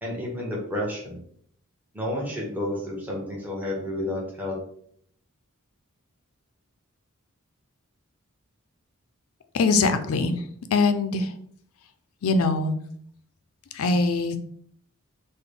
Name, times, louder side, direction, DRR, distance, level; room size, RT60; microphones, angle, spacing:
voice 1, 0.0-1.2 1.9-4.6, left 1 dB, 10° right, -4 dB, 0.8 m, -30 dB
voice 2, 9.5-10.4 10.7-11.3 12.2-12.8 13.7-14.4, left 3 dB, 70° left, 9 dB, 0.4 m, -22 dB
3.8 x 2.1 x 3.3 m, 0.63 s
head